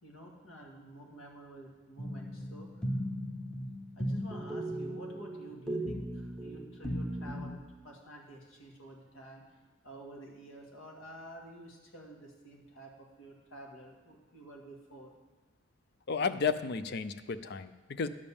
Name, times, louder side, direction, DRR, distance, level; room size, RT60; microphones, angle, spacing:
voice 1, 0.0-2.7 4.0-7.6 7.8-9.4 9.8-15.1, right 1 dB, 75° left, -1 dB, 1.9 m, -50 dB
sound 1, 2.0-7.5, equal, 5° left, 0.9 m, -37 dB
voice 2, 16.1-18.1, left 5 dB, 50° left, 12 dB, 0.5 m, -33 dB
10.5 x 5.2 x 7.0 m, 1.2 s
head